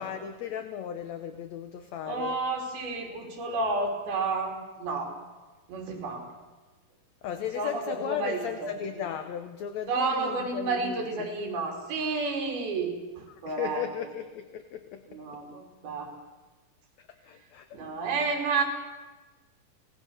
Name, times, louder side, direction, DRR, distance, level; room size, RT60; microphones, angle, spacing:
voice 1, 0.0-2.4 7.2-11.3 13.5-15.0 17.3-17.8, left 9 dB, 70° left, 8 dB, 1.7 m, -36 dB
voice 2, 2.1-5.1 5.7-6.3 7.5-8.7 9.9-14.1 15.1-16.1 17.7-18.6, right 3 dB, 90° right, 2 dB, 5.1 m, -31 dB
27.0 x 18.0 x 6.5 m, 1.2 s
omnidirectional pair, 4.2 m